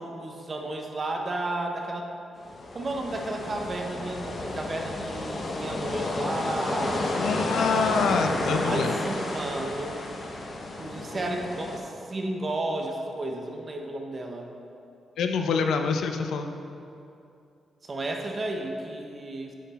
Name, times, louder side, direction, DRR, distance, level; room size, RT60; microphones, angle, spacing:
voice 1, 0.0-2.1 2.7-7.4 8.6-10.1 10.8-14.5 17.8-19.5, right 2 dB, 25° right, 2 dB, 0.7 m, -33 dB
sound 1, 2.4-11.8, left 2 dB, 35° left, 0.7 m, -31 dB
voice 2, 7.2-8.9 15.2-16.5, left 5 dB, 80° left, 6 dB, 0.5 m, -26 dB
8.4 x 5.8 x 4.1 m, 2.7 s
wide cardioid pair, 180°, 0 cm